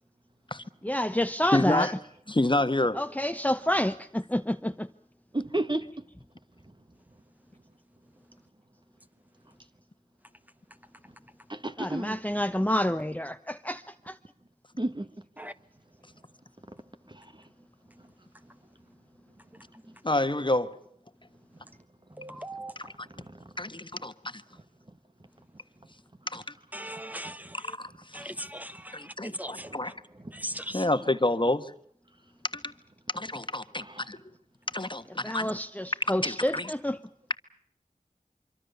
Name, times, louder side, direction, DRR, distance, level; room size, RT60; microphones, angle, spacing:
voice 1, 0.8-2.0 2.9-4.9 11.8-14.2 35.2-37.0, left 1 dB, 10° left, 0.9 m, -28 dB
voice 2, 1.5-1.9 2.3-3.0 20.0-20.8 22.7-23.1 23.6-24.4 26.3-26.5 27.5-28.3 28.9-29.9 30.7-31.7 32.5-32.7 33.1-34.2 34.7-35.5 36.2-36.7, left 2 dB, 35° left, 1.4 m, -29 dB
voice 3, 5.3-5.9 11.5-12.2 14.8-15.1 16.7-16.8 17.1-17.4 22.3-23.5 24.0-24.1 26.3-26.4 27.2-27.3 29.5-29.9 30.1-30.9 33.7-34.1, right 1 dB, 35° right, 1.5 m, -35 dB
voice 4, 22.1-22.7 26.7-27.7 28.1-29.7 30.3-30.8, right 1 dB, 10° right, 1.4 m, -39 dB
25.0 x 24.5 x 6.9 m
wide cardioid pair, 40°, 14 cm